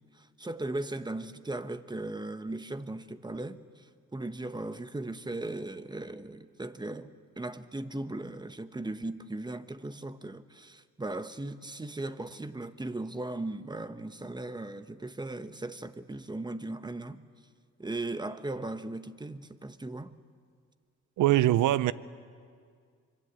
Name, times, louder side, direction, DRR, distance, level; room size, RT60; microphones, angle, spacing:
voice 1, 0.1-17.2 17.8-20.1, right 2 dB, 15° right, 1.0 m, -38 dB
voice 2, 21.2-21.9, right 14 dB, 80° right, 0.8 m, -22 dB
25.0 x 23.0 x 8.2 m
cardioid pair, 90°, 30 cm